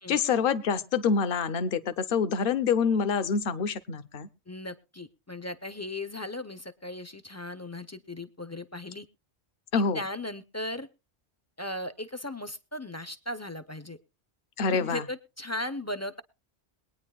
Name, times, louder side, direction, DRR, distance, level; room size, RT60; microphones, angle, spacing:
voice 1, 0.1-4.3 9.7-10.0 14.6-15.0, left 6 dB, 60° left, 13 dB, 0.9 m, -26 dB
voice 2, 4.5-9.1 9.7-10.9 11.6-14.0 14.7-16.2, left 1 dB, 20° left, 11 dB, 0.5 m, -37 dB
22.5 x 9.3 x 2.3 m, 0.28 s
omnidirectional pair, 1.1 m